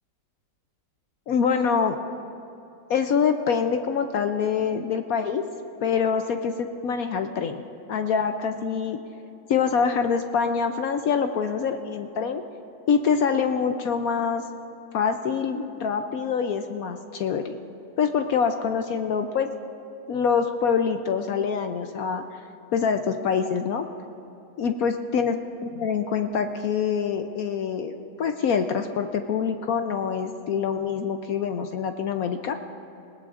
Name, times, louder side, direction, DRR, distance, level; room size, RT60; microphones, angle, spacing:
voice 1, 1.3-2.0 2.9-5.5 5.8-9.0 9.5-12.4 12.9-14.4 14.9-17.6 18.0-19.5 20.1-22.2 22.7-23.9 24.6-32.5, left 6 dB, 70° left, 6 dB, 0.9 m, -25 dB
20.5 x 18.0 x 2.5 m, 2.9 s
omnidirectional pair, 1.9 m